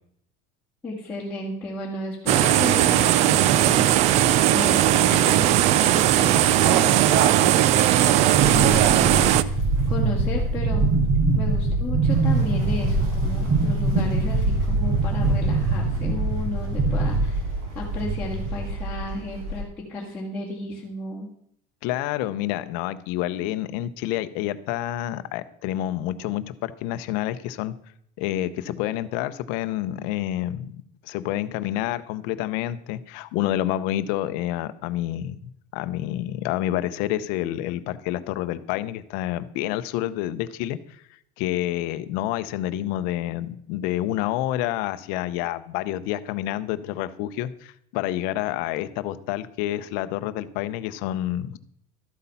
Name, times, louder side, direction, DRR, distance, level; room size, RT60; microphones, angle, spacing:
voice 1, 0.8-3.9 4.5-9.6 9.9-10.9 11.3-21.3, left 2 dB, 10° left, -7 dB, 2.1 m, -33 dB
sound 1, 2.3-9.4, right 12 dB, 35° right, 0.4 m, -18 dB
sound 2, 8.4-19.6, right 3 dB, 55° right, 5.1 m, -23 dB
voice 2, 21.8-27.7 28.2-41.0 41.4-51.6, left 13 dB, 55° left, 12 dB, 0.8 m, -28 dB
13.0 x 8.3 x 5.6 m, 0.70 s
cardioid pair, 175°, 18 cm